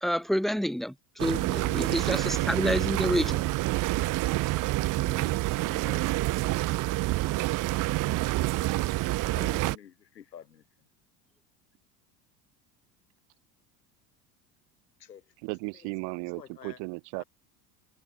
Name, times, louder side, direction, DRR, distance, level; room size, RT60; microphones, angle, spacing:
voice 1, 0.0-3.4 5.0-5.6, equal, ahead, 0.5 m, -29 dB
sound 1, 1.2-9.8, right 19 dB, 40° right, 0.7 m, -27 dB
voice 2, 1.7-2.9 3.2-3.4 3.7-5.3 5.6-6.5 7.1-7.5 9.3-10.9 15.0-15.3 15.7-15.9 16.2-16.8 17.2-17.3, left 9 dB, 90° left, 4.8 m, -52 dB
voice 3, 15.4-17.2, right 34 dB, 60° right, 2.1 m, -35 dB
hypercardioid pair, 75°, 48 cm